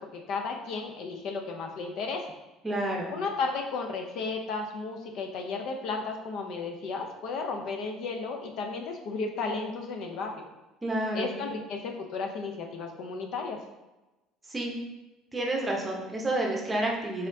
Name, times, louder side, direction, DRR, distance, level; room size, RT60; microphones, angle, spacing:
voice 1, 0.0-2.2 3.1-10.5 11.1-13.6, left 4 dB, 60° left, 3 dB, 0.5 m, -34 dB
voice 2, 2.6-3.1 10.8-11.3 14.5-14.7 15.3-17.3, right 1 dB, 15° right, -1 dB, 0.7 m, -29 dB
4.1 x 3.7 x 2.6 m, 1.0 s
cardioid pair, 140°, 0 cm